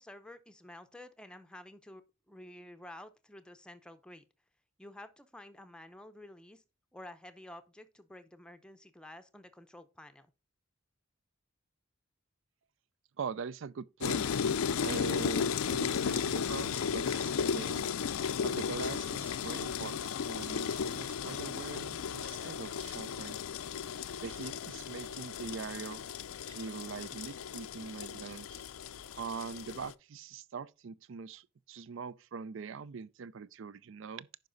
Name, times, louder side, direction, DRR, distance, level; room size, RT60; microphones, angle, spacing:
voice 1, 0.0-2.0 2.3-4.2 4.8-6.6 6.9-10.3, left 1 dB, 5° left, 0.7 m, -51 dB
voice 2, 13.2-14.3 14.8-17.9 18.4-23.4 24.2-26.0 26.4-28.6 29.1-34.3, right 5 dB, 60° right, 0.4 m, -42 dB
sound 1, 14.0-29.9, left 6 dB, 80° left, 0.5 m, -35 dB
10.5 x 5.2 x 3.9 m
head